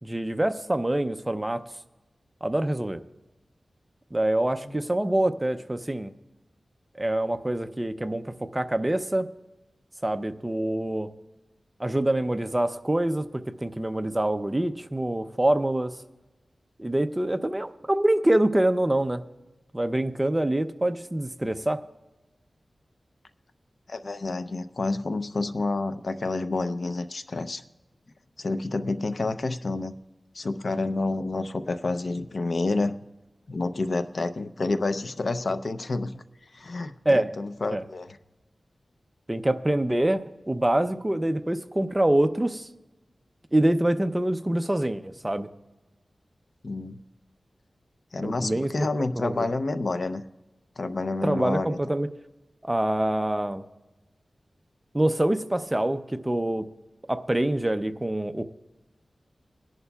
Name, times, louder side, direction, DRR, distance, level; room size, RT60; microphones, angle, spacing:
voice 1, 0.0-1.6 2.4-3.0 4.1-6.1 7.0-9.3 10.0-11.1 11.8-15.9 16.8-19.2 19.7-21.8 37.1-37.3 37.7-37.8 39.3-42.7 43.5-45.5 48.2-48.9 49.2-49.5 51.2-52.1 52.6-53.6 54.9-56.7 57.1-58.4, right 1 dB, 15° right, 8 dB, 0.5 m, -25 dB
voice 2, 23.9-27.6 28.4-29.9 30.3-33.0 33.5-36.2 36.5-38.2 46.6-47.0 48.1-50.2 50.8-51.8, left 3 dB, 55° left, 11 dB, 0.6 m, -29 dB
21.5 x 11.0 x 2.3 m, 1.1 s
wide cardioid pair, 95°, 0 cm